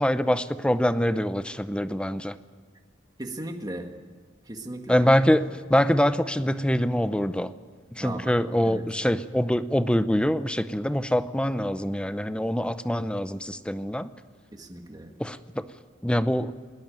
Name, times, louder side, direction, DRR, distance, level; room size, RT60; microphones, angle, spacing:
voice 1, 0.0-2.4 4.9-5.4 5.7-7.5 7.9-14.1 15.2-15.6 16.0-16.5, equal, 5° left, 13 dB, 0.7 m, -24 dB
voice 2, 3.2-3.9 4.5-5.0 8.0-8.3 8.6-8.8 14.5-15.1, right 1 dB, 20° right, 4 dB, 1.9 m, -36 dB
20.0 x 20.0 x 9.1 m, 1.4 s
head